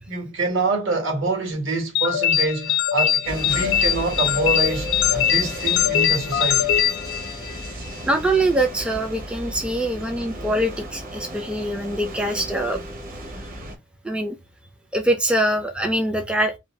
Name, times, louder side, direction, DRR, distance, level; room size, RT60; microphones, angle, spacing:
voice 1, 0.1-6.7, right 3 dB, 70° right, 1.3 m, -26 dB
sound 1, 2.0-7.7, left 10 dB, 65° left, 0.4 m, -22 dB
sound 2, 3.2-13.8, right 1 dB, 45° right, 0.9 m, -34 dB
voice 2, 8.1-12.8 14.0-14.4 14.9-16.6, right 1 dB, 5° right, 0.3 m, -23 dB
2.6 x 2.2 x 3.1 m
head